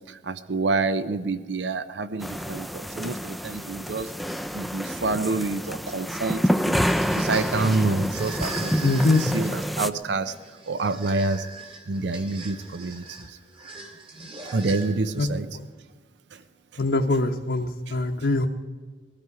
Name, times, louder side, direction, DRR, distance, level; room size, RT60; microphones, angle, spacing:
voice 1, 0.1-4.1 4.5-6.8 7.1-10.4 10.7-11.5 11.9-13.4 14.5-15.6 16.3-16.4 16.7-16.8 17.9-18.3, right 3 dB, 80° right, 13 dB, 0.6 m, -28 dB
sound 1, 2.2-9.9, equal, ahead, 0.3 m, -28 dB
sound 2, 6.6-15.2, right 3 dB, 30° right, 2.0 m, -40 dB
voice 2, 8.8-9.2 15.2-15.3 16.8-18.5, left 2 dB, 70° left, 1 dB, 0.8 m, -22 dB
20.5 x 12.5 x 4.8 m, 1.5 s
head